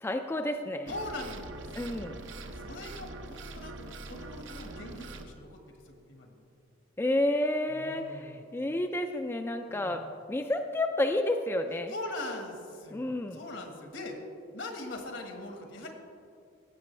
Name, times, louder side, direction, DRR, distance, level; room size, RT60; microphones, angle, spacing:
voice 1, 0.0-0.9 1.8-2.2 7.0-10.0 10.3-11.9 12.9-13.4, left 1 dB, 15° left, 5 dB, 0.3 m, -30 dB
voice 2, 0.9-5.6 5.8-6.4 7.7-8.4 9.7-10.0 11.9-14.2 14.5-15.9, left 2 dB, 75° left, 3 dB, 1.5 m, -42 dB
sound 1, 0.9-5.3, right 2 dB, 70° right, 0.7 m, -43 dB
16.0 x 7.6 x 3.2 m, 2.3 s
head